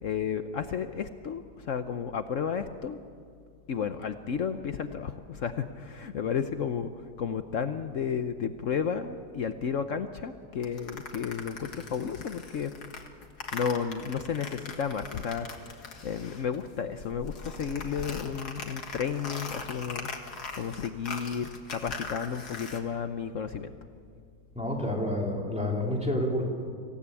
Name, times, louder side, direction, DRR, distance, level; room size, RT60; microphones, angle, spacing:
voice 1, 0.0-3.0 3.7-6.9 7.2-12.7 13.5-23.7, left 7 dB, 60° left, 9 dB, 1.1 m, -32 dB
sound 1, 10.6-16.7 16.9-22.8, left 4 dB, 75° left, 2.3 m, -41 dB
voice 2, 24.5-26.4, left 1 dB, 5° right, -2 dB, 3.5 m, -29 dB
26.0 x 16.0 x 8.4 m, 2.2 s
omnidirectional pair, 1.7 m